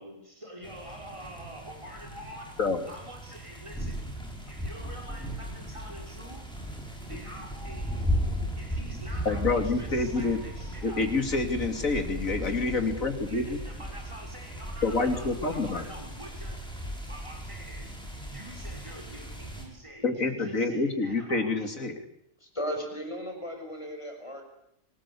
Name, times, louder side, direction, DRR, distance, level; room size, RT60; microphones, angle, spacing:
voice 1, 0.0-2.5 2.9-4.1 4.5-6.5 7.0-8.2 8.6-11.1 13.2-16.7 17.1-17.9 18.3-21.7, equal, 20° right, 1 dB, 5.4 m, -46 dB
sound 1, 0.6-19.6, equal, 5° left, 7.2 m, -36 dB
voice 2, 9.2-10.4 10.8-13.6 14.8-15.8 20.0-22.0, left 3 dB, 70° left, 6 dB, 3.3 m, -27 dB
voice 3, 22.4-24.4, equal, 20° left, 4 dB, 5.9 m, -35 dB
27.5 x 20.0 x 8.5 m, 0.76 s
omnidirectional pair, 1.4 m